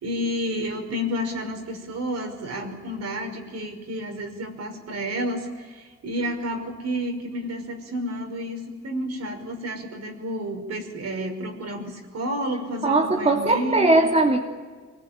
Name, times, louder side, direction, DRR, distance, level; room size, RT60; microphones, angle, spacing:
voice 1, 0.0-14.1, equal, 60° right, 4 dB, 5.5 m, -30 dB
voice 2, 12.8-14.4, right 2 dB, 20° right, 0 dB, 2.7 m, -19 dB
25.0 x 20.0 x 9.1 m, 1.5 s
cardioid pair, 90°, 30 cm